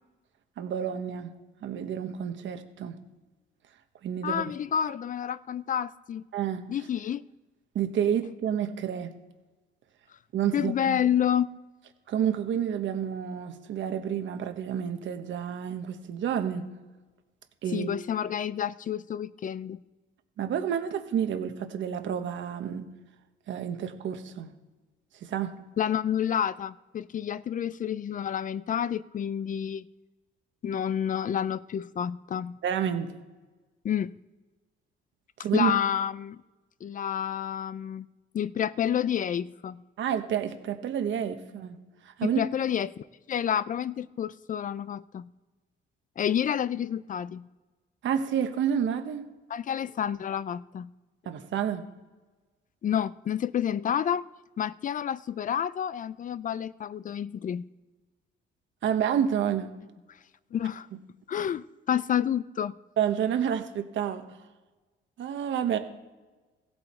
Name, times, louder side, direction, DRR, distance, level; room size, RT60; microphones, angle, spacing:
voice 1, 0.6-1.3 1.6-3.0 4.0-4.5 6.3-6.7 7.7-9.1 10.3-11.0 12.1-16.7 17.6-18.0 20.4-22.9 23.5-24.5 25.1-25.5 32.6-33.1 35.4-35.7 40.0-41.8 42.0-42.4 48.0-49.3 51.2-51.9 58.8-59.7 63.0-64.4 65.2-65.8, right 8 dB, 70° right, 7 dB, 1.1 m, -29 dB
voice 2, 4.2-6.2 6.7-7.2 10.5-11.5 17.7-19.8 25.8-29.8 30.6-32.6 33.8-34.1 35.5-36.4 36.8-38.1 38.3-39.8 42.2-42.9 43.3-45.3 46.2-47.5 49.5-50.9 52.8-54.3 54.6-57.7 60.5-60.9 61.3-62.7, left 9 dB, 40° left, 18 dB, 0.4 m, -29 dB
16.0 x 7.7 x 4.4 m, 1.2 s
cardioid pair, 90°, 20 cm